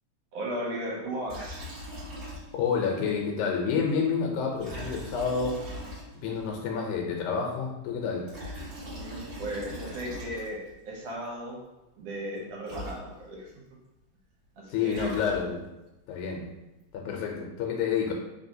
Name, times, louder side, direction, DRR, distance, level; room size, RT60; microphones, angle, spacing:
voice 1, 0.3-1.6 9.0-10.6 10.9-11.6 12.0-13.5 14.6-15.2, right 1 dB, 65° right, -3 dB, 1.9 m, -36 dB
Liquid, 1.3-2.8 3.1-3.2 4.5-6.4 8.1-10.7 12.4-12.5 12.6-13.5 14.6-15.8, equal, 45° right, 1.9 m, -41 dB
voice 2, 2.5-5.7 6.2-8.3 14.7-15.6 16.1-16.5 16.9-18.1, left 6 dB, 85° left, 0 dB, 2.1 m, -29 dB
4.3 x 3.3 x 2.6 m, 1.0 s
omnidirectional pair, 3.4 m